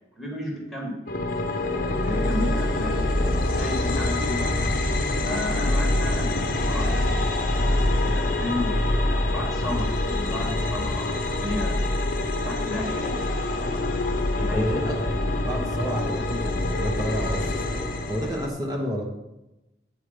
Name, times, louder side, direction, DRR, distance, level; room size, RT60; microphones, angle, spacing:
voice 1, 0.1-0.9 2.0-3.0 3.5-4.5 5.2-11.9 12.4-13.2 14.3-14.6, left 1 dB, 5° right, -3 dB, 1.5 m, -33 dB
sound 1, 1.1-18.5, left 1 dB, 50° left, 0.8 m, -25 dB
voice 2, 14.5-19.0, equal, 20° right, 0 dB, 1.0 m, -30 dB
8.9 x 4.9 x 5.0 m, 0.95 s
head